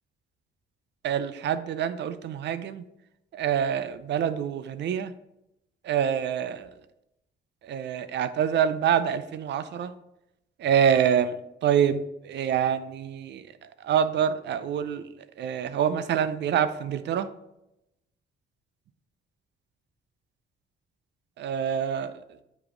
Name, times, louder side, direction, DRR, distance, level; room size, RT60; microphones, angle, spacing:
voice 1, 1.0-2.8 3.3-5.1 5.8-6.7 7.6-9.9 10.6-11.4 11.6-13.5 13.8-15.1 15.4-17.3 21.4-22.1, right 8 dB, 60° right, 13 dB, 0.5 m, -26 dB
8.8 x 3.0 x 3.8 m, 0.86 s
cardioid pair, 90°, 20 cm